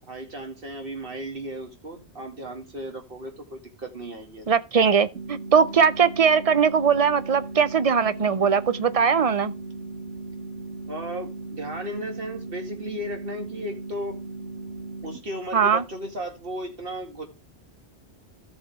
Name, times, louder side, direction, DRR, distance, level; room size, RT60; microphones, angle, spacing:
voice 1, 0.1-4.5 10.9-14.2 15.0-17.2, right 1 dB, 55° right, 2.5 m, -35 dB
voice 2, 4.5-9.5 15.5-15.8, right 6 dB, 40° right, 0.6 m, -20 dB
sound 1, 5.1-15.2, right 3 dB, 80° right, 1.8 m, -37 dB
14.5 x 6.2 x 3.5 m
omnidirectional pair, 1.1 m